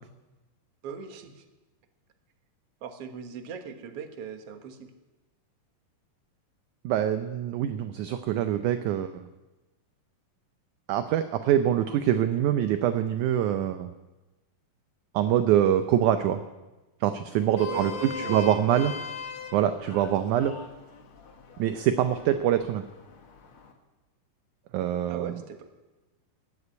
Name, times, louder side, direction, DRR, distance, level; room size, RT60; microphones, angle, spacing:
voice 1, 0.8-1.4 2.8-4.9 17.7-19.0 25.1-25.7, right 6 dB, 55° right, 6 dB, 1.9 m, -39 dB
voice 2, 6.8-9.2 10.9-13.9 15.1-16.4 17.0-18.9 19.5-20.6 21.6-22.8 24.7-25.3, right 10 dB, 75° right, 9 dB, 1.9 m, -24 dB
Vehicle horn car horn honking, 17.3-23.7, left 6 dB, 50° left, 1.9 m, -40 dB
15.0 x 9.8 x 9.7 m, 1.1 s
omnidirectional pair, 4.1 m